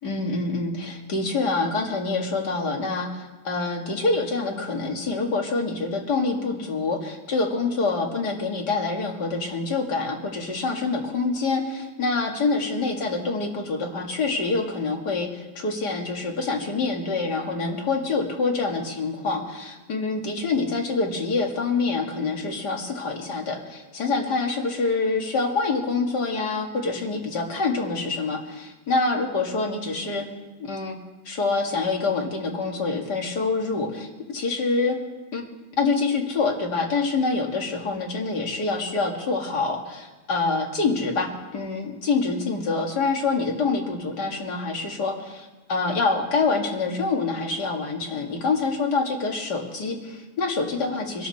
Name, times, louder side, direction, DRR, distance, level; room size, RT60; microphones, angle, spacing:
voice 1, 0.0-30.2 30.6-30.9 31.3-35.0 35.3-35.4 35.8-51.3, left 3 dB, 75° left, 1 dB, 2.7 m, -26 dB
24.0 x 12.5 x 4.2 m, 1.2 s
omnidirectional pair, 1.8 m